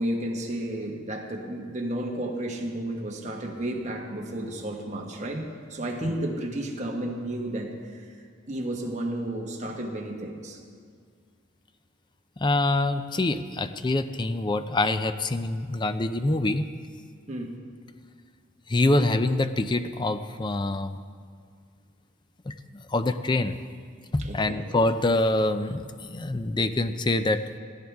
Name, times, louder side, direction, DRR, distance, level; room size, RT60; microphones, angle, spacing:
voice 1, 0.0-8.0 8.5-10.6 17.3-17.6 24.2-24.6, right 1 dB, 35° right, 1 dB, 1.5 m, -32 dB
voice 2, 12.4-16.7 18.7-21.0 22.5-22.6 22.9-23.5 24.1-27.4, left 2 dB, 20° left, 10 dB, 0.5 m, -25 dB
17.0 x 15.5 x 3.5 m, 2.1 s
head